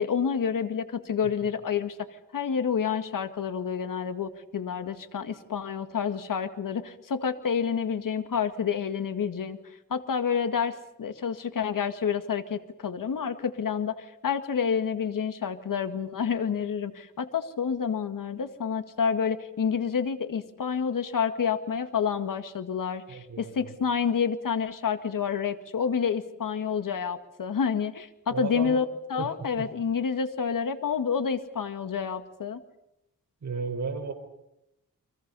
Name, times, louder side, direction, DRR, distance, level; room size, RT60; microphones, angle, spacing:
voice 1, 0.0-2.1 2.3-9.6 9.9-28.9 29.1-32.6, left 6 dB, 70° left, 10 dB, 2.0 m, -29 dB
voice 2, 23.1-23.7 28.3-28.8 29.2-29.3 29.6-29.7 33.4-34.1, right 4 dB, 55° right, 4 dB, 4.5 m, -33 dB
30.0 x 24.0 x 5.5 m, 0.84 s
cardioid pair, 90°, 34 cm